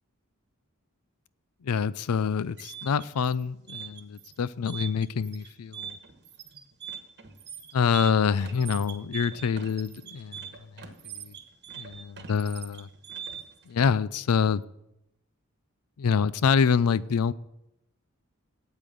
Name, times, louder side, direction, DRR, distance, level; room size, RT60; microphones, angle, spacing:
voice 1, 1.6-6.0 7.7-10.5 10.8-11.3 11.7-12.9 13.7-14.6 16.0-17.3, left 6 dB, 80° left, 0.4 m, -26 dB
sound 1, 2.3-13.6, right 8 dB, 50° right, 1.2 m, -42 dB
8.7 x 8.3 x 7.7 m
head